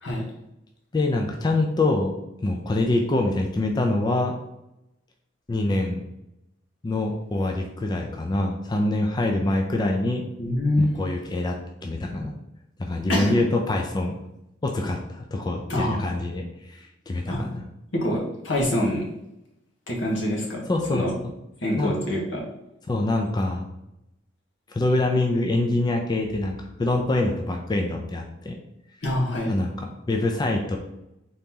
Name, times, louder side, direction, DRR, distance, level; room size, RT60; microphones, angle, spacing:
voice 1, 0.9-4.3 5.5-6.0 6.8-10.2 10.8-12.3 12.8-14.2 14.6-17.6 20.7-21.3 21.8-22.0 22.9-23.7 24.7-28.6 29.5-30.8, left 2 dB, 25° left, 2 dB, 0.4 m, -25 dB
voice 2, 10.4-11.0 13.1-13.4 15.7-16.1 17.3-17.4 17.9-19.0 19.9-20.6 20.9-21.1 21.6-22.4 29.0-29.5, left 1 dB, 75° left, -2 dB, 1.2 m, -25 dB
3.9 x 2.9 x 3.6 m, 0.86 s
head